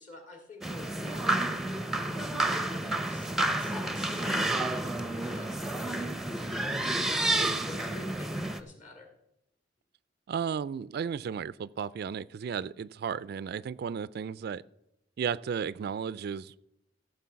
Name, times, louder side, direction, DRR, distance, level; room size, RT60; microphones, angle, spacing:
voice 1, 0.0-1.6 2.2-9.1, left 2 dB, 45° left, 3 dB, 2.5 m, -48 dB
sound 1, 0.6-8.6, right 2 dB, ahead, 0.6 m, -30 dB
voice 2, 10.3-14.6 15.2-16.5, right 7 dB, 60° right, 18 dB, 0.3 m, -34 dB
14.5 x 6.7 x 5.7 m, 0.82 s
head